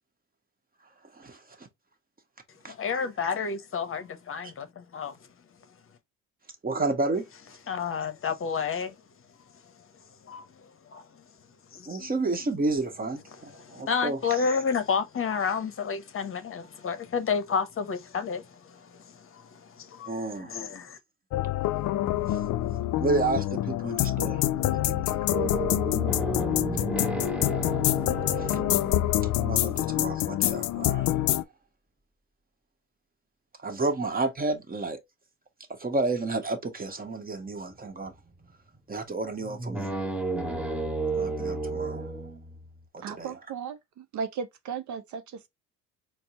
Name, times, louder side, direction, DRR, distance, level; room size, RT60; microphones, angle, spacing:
voice 1, 1.1-1.7 2.6-2.7 4.4-4.5 6.6-7.3 11.9-14.5 20.1-20.6 22.3-22.4 23.0-25.5 28.3-28.6 29.0-31.4 33.6-35.0 35.7-38.1 38.9-39.9 41.1-42.1 42.9-43.4, right 3 dB, 25° right, 1.2 m, -31 dB
voice 2, 2.7-5.2 7.7-8.9 10.2-10.4 10.9-11.1 11.7-12.1 13.5-21.0, left 6 dB, 35° left, 0.8 m, -31 dB
sound 1, 21.3-31.4, left 14 dB, 55° left, 0.5 m, -26 dB
sound 2, 25.3-30.2 37.8-38.4 38.7-38.8 39.4-42.8, right 2 dB, 5° right, 0.9 m, -33 dB
voice 3, 43.0-45.5, right 6 dB, 55° right, 0.6 m, -36 dB
4.2 x 2.1 x 3.8 m
supercardioid pair, 75°, 36 cm